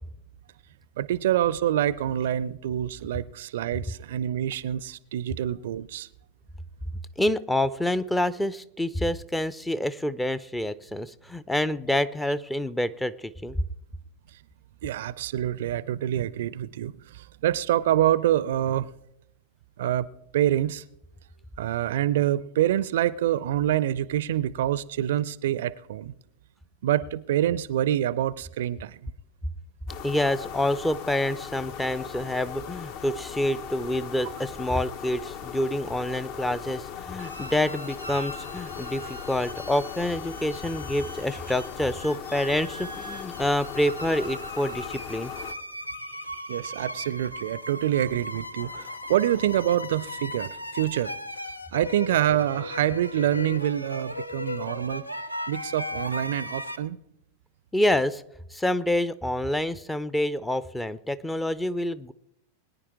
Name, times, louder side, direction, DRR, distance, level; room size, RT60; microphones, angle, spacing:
voice 1, 1.0-6.1 14.8-18.9 19.8-20.1 20.3-20.8 21.6-26.1 26.8-29.1 46.1-51.1 51.7-55.0 55.5-57.0, right 12 dB, 55° right, 0.4 m, -26 dB
voice 2, 7.2-13.6 30.0-45.3 57.7-58.2 58.5-62.1, left 1 dB, 5° left, 0.5 m, -27 dB
sound 1, 29.9-45.5, left 8 dB, 45° left, 0.8 m, -39 dB
sound 2, 37.2-56.8, left 1 dB, 85° left, 0.7 m, -38 dB
22.0 x 10.0 x 3.6 m
figure-of-eight pair, 90°, 0 cm